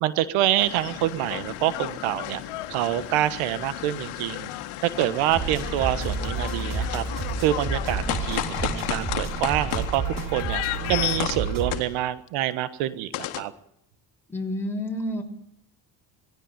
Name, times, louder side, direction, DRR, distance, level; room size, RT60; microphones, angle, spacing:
voice 1, 0.0-2.4 2.7-4.5 4.8-7.0 7.4-10.6 10.9-13.5, right 13 dB, 80° right, 15 dB, 1.5 m, -26 dB
sound 1, 0.6-12.3 13.1-13.4, left 15 dB, 80° left, 1.7 m, -33 dB
sound 2, 5.3-11.8, right 4 dB, 40° right, 3.7 m, -30 dB
voice 2, 14.3-15.2, left 1 dB, 5° left, 1 dB, 6.0 m, -29 dB
18.5 x 16.5 x 9.0 m, 0.73 s
supercardioid pair, 65°, 49 cm